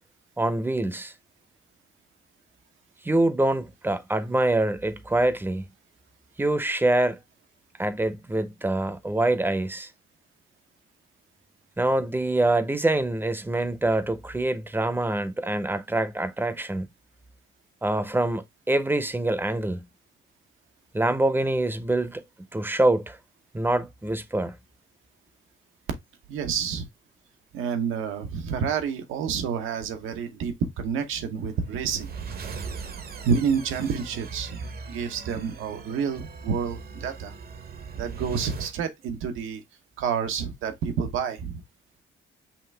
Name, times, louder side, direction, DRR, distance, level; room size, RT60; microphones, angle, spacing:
voice 1, 0.4-1.1 3.0-5.6 6.4-7.2 7.8-9.9 11.8-16.9 17.8-19.8 20.9-22.2 22.5-23.2 23.5-24.6, right 2 dB, 10° right, 0.7 m, -25 dB
voice 2, 26.3-26.9 27.5-32.2 33.2-37.3 38.0-39.6 40.0-41.6, right 6 dB, 85° right, 1.0 m, -29 dB
sound 1, 31.4-38.8, right 5 dB, 50° right, 0.8 m, -39 dB
5.8 x 2.5 x 3.3 m
cardioid pair, 90°, 20 cm